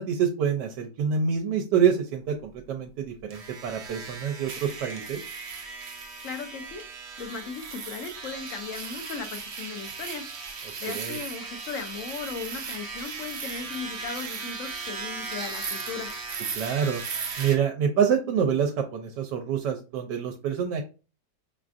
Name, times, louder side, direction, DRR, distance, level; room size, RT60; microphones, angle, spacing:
voice 1, 0.0-5.2 10.9-11.2 16.5-17.0 17.4-20.8, right 7 dB, 85° right, 4 dB, 1.2 m, -26 dB
sound 1, 3.3-17.6, right 5 dB, 55° right, 0.8 m, -37 dB
voice 2, 6.2-6.8 7.2-10.2 10.8-16.1, left 5 dB, 65° left, 6 dB, 0.9 m, -37 dB
5.8 x 2.4 x 2.5 m, 0.33 s
omnidirectional pair, 1.8 m